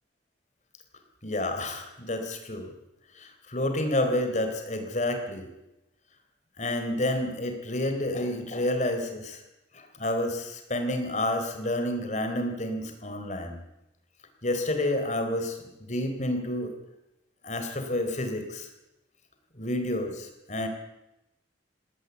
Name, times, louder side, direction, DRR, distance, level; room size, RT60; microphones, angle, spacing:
voice 1, 1.2-2.7 3.2-5.5 6.6-9.4 9.7-13.6 14.4-16.7 17.4-18.7 19.6-20.7, left 1 dB, 40° left, 6 dB, 3.9 m, -29 dB
20.0 x 18.0 x 8.3 m, 0.94 s
head